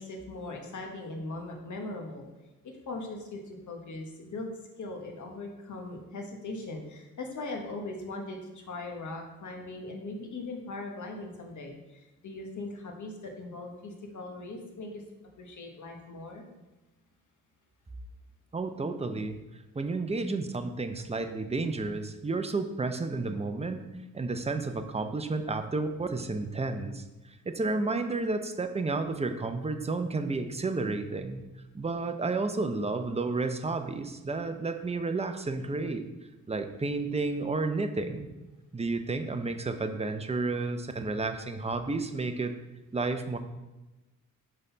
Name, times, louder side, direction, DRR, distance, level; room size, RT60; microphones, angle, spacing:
voice 1, 0.0-2.3 2.6-4.5 4.8-15.0 15.4-16.5, left 2 dB, 65° left, 2 dB, 1.4 m, -40 dB
voice 2, 18.5-19.4 19.7-23.8 24.1-27.0 27.5-31.4 31.7-36.1 36.5-38.3 38.7-42.5 42.9-43.4, right 3 dB, 20° right, 7 dB, 0.6 m, -31 dB
5.6 x 4.0 x 5.5 m, 1.1 s
cardioid pair, 85°, 32 cm